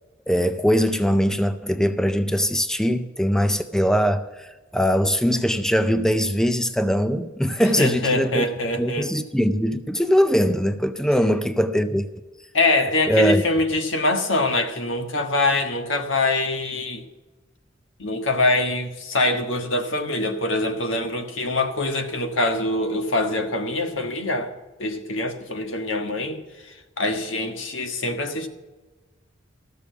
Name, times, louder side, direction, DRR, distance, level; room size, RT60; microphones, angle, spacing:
voice 1, 0.3-8.5 8.8-12.1 13.1-13.4, equal, 5° left, 0.5 m, -21 dB
voice 2, 7.8-9.1 12.5-17.0 18.0-24.5 24.8-26.4 27.0-28.5, left 2 dB, 75° left, 1.5 m, -24 dB
14.0 x 6.8 x 8.0 m
head